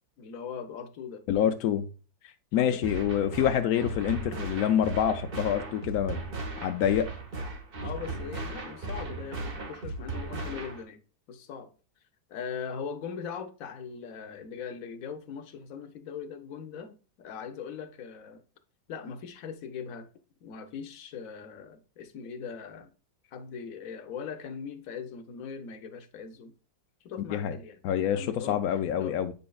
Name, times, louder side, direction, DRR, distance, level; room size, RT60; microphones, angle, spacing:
voice 1, 0.2-1.2 2.5-2.8 7.8-11.0 11.3-11.7 12.3-18.4 18.9-20.1 20.4-22.9 23.3-26.5 27.0-27.8 28.1-29.2, left 6 dB, 60° left, 1.0 m, -40 dB
voice 2, 1.3-1.9 2.5-6.2 6.6-7.1 27.3-27.6 27.8-29.3, left 9 dB, 85° left, 0.8 m, -26 dB
sound 1, 2.8-10.8, right 2 dB, 40° right, 0.9 m, -37 dB
7.6 x 5.4 x 2.3 m
omnidirectional pair, 2.1 m